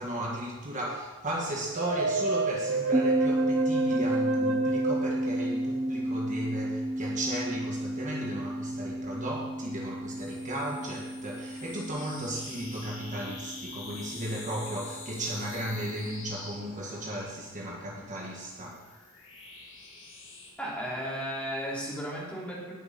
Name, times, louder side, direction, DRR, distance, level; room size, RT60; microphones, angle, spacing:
voice 1, 0.0-18.8, right 1 dB, 35° right, -3 dB, 1.5 m, -35 dB
sound 1, 1.8-6.0, right 3 dB, 75° right, 1.0 m, -30 dB
sound 2, 2.9-15.7, right 1 dB, 15° right, 0.4 m, -32 dB
sound 3, 10.2-17.5 18.4-20.5, left 4 dB, 65° left, 2.9 m, -46 dB
voice 2, 20.6-22.7, equal, 5° left, -6 dB, 3.3 m, -34 dB
18.5 x 6.9 x 4.2 m, 1.3 s
head